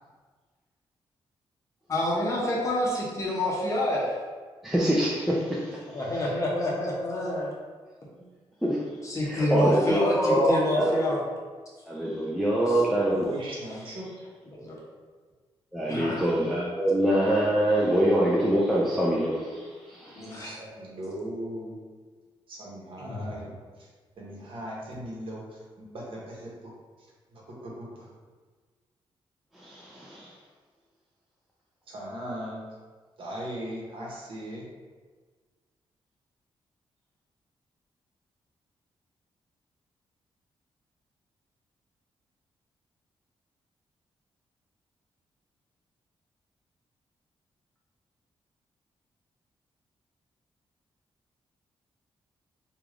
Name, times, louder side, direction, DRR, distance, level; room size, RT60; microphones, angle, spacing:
voice 1, 1.9-4.1 5.9-7.5 9.0-11.2 12.7-12.8 14.5-14.8 15.8-16.3 20.2-20.5 23.0-23.3, left 1 dB, 35° left, -4 dB, 0.9 m, -28 dB
voice 2, 4.6-5.8 8.6-8.8 9.2-11.2 11.9-13.3 15.7-20.3 29.6-30.3, right 1 dB, ahead, -5 dB, 0.4 m, -25 dB
voice 3, 13.2-14.3 20.4-21.8 22.5-23.5 23.8-23.9 24.2-26.8 27.3-28.1 31.9-32.8 33.2-34.7, right 1 dB, 65° right, -3 dB, 0.9 m, -38 dB
3.3 x 2.3 x 3.6 m, 1.4 s
cardioid pair, 115°, 10 cm